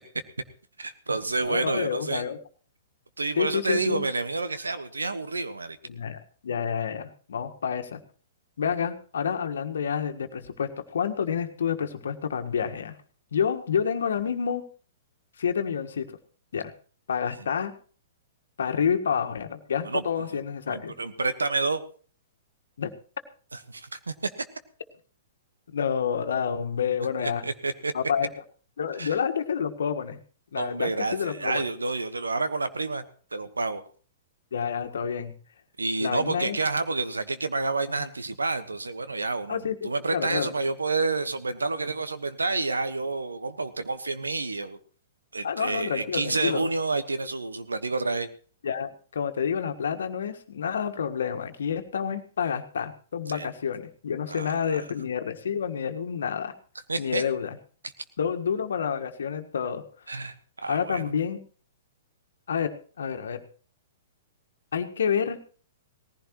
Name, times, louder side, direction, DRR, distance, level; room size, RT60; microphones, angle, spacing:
voice 1, 0.8-2.2 3.2-5.8 19.8-20.4 20.7-21.8 23.5-24.3 27.2-27.9 29.0-29.1 30.5-33.0 33.3-33.8 35.8-44.8 45.3-48.3 53.3-53.5 54.3-54.8 56.9-57.2 60.1-60.3 60.6-61.1, right 3 dB, 90° right, 11 dB, 1.3 m, -29 dB
voice 2, 1.5-2.4 3.4-4.0 5.9-8.0 8.6-12.9 13.3-14.6 15.4-16.1 16.5-16.7 17.1-17.7 18.6-20.9 22.8-22.9 25.7-27.4 27.9-28.3 28.8-30.2 30.5-31.7 34.5-35.3 36.0-36.6 39.5-39.8 40.1-40.5 45.4-46.7 48.6-56.5 57.0-57.6 58.2-60.2 60.7-61.4 62.5-62.7 63.0-63.4 64.7-65.4, left 7 dB, 70° left, 7 dB, 1.5 m, -29 dB
19.0 x 15.0 x 3.1 m, 0.41 s
hypercardioid pair, 115°, 0 cm